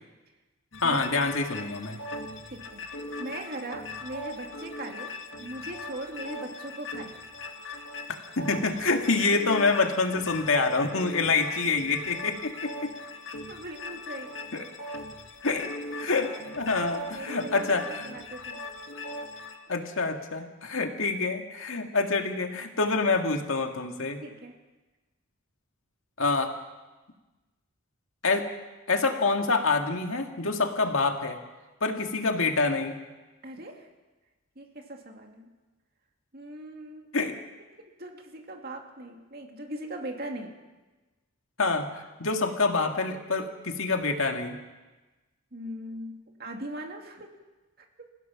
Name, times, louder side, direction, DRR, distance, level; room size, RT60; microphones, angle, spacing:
sound 1, 0.7-19.6, left 2 dB, 65° left, 2.1 m, -40 dB
voice 1, 0.8-2.0 8.4-12.9 14.5-14.6 15.4-15.7 16.0-18.0 19.7-24.2 26.2-26.5 28.2-28.5 28.9-31.4 31.8-33.0 37.1-37.4 41.6-44.6, left 3 dB, 80° left, 4 dB, 2.0 m, -26 dB
voice 2, 2.5-7.2 13.5-14.4 16.8-18.6 19.4-19.5 24.2-24.6 33.4-33.9 34.6-35.5 36.3-37.1 37.8-40.6 45.5-47.3 47.8-48.1, right 1 dB, 45° right, 3 dB, 2.4 m, -40 dB
28.0 x 16.0 x 5.9 m, 1.2 s
head